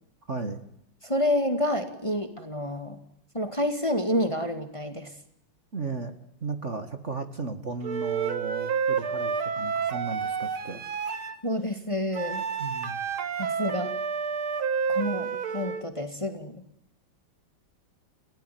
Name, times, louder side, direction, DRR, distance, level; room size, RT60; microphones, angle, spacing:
voice 1, 0.3-0.6 5.7-6.1 6.4-10.9 12.6-13.0, right 3 dB, 35° right, 9 dB, 2.1 m, -35 dB
voice 2, 1.0-3.0 3.3-5.1 11.4-12.4 13.4-13.9 14.9-16.6, left 1 dB, 15° left, 8 dB, 2.2 m, -28 dB
Wind instrument woodwind instrument, 7.8-11.4 12.1-15.9, right 6 dB, 90° right, 2.6 m, -30 dB
29.5 x 18.0 x 9.4 m, 0.77 s
omnidirectional pair, 2.2 m